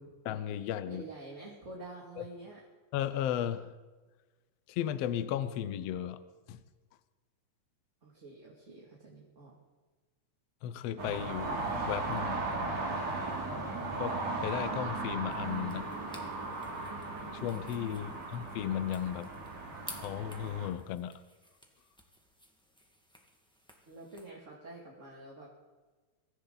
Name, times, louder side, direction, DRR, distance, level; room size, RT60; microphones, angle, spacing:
voice 1, 0.3-1.0 2.2-2.3 2.9-3.7 4.7-6.2 6.5-6.6 10.6-12.4 14.0-15.9 17.4-19.3 19.9-21.1, left 10 dB, 70° left, 12 dB, 1.7 m, -35 dB
voice 2, 0.9-2.6 8.0-9.6 23.9-25.5, right 2 dB, 25° right, -4 dB, 2.5 m, -48 dB
sound 1, 11.0-20.7, right 3 dB, 65° right, 3.9 m, -37 dB
sound 2, 15.3-24.3, equal, ahead, 1.1 m, -54 dB
23.5 x 15.0 x 4.0 m, 1.3 s
omnidirectional pair, 3.4 m